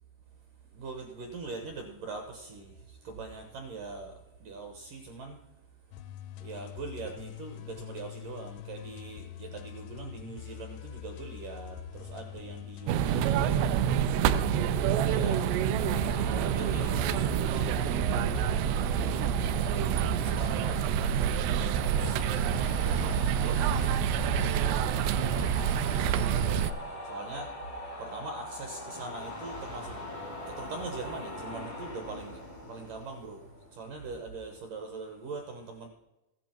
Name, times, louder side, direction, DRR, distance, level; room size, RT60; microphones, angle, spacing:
voice 1, 0.7-5.4 6.4-15.5 16.2-19.2 20.0-24.1 24.4-30.2 30.4-35.9, right 3 dB, 70° right, 4 dB, 2.1 m, -42 dB
sound 1, 5.9-24.7, left 13 dB, 90° left, 3.1 m, -44 dB
sound 2, 12.9-26.7, right 9 dB, 85° right, 2.4 m, -27 dB
sound 3, 15.8-34.3, left 1 dB, 60° left, 0.3 m, -43 dB
15.5 x 11.0 x 4.5 m, 0.98 s
omnidirectional pair, 5.5 m